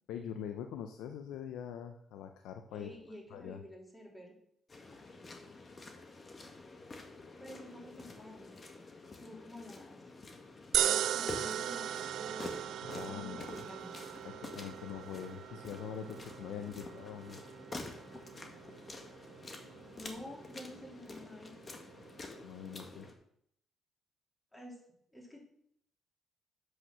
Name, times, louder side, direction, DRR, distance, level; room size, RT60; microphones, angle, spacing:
voice 1, 0.1-2.9 3.3-3.6 12.8-13.6 14.2-17.4 22.4-23.1, left 8 dB, 90° left, 6 dB, 0.6 m, -43 dB
voice 2, 2.7-4.3 7.4-8.6 9.2-10.0 10.8-12.6 13.1-14.0 20.0-21.5 24.5-24.8 25.1-25.4, left 1 dB, 10° left, -3 dB, 3.4 m, -50 dB
sound 1, 4.7-23.1, left 3 dB, 35° left, 1.7 m, -49 dB
sound 2, 10.7-23.1, right 11 dB, 75° right, 0.4 m, -39 dB
7.8 x 6.4 x 6.1 m, 0.71 s
cardioid pair, 90°, 0 cm